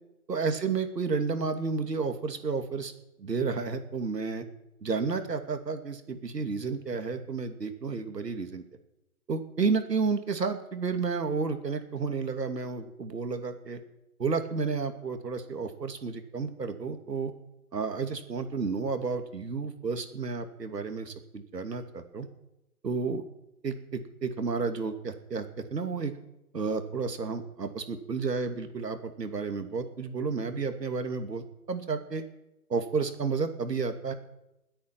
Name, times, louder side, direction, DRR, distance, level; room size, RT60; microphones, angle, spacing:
voice 1, 0.3-2.9 3.2-4.4 4.8-8.6 9.3-13.8 14.2-17.3 17.7-22.3 22.8-23.2 23.6-26.1 26.5-32.2 32.7-34.1, right 4 dB, 85° right, 7 dB, 2.6 m, -31 dB
20.5 x 8.6 x 6.0 m, 0.91 s
hypercardioid pair, 160°, 48 cm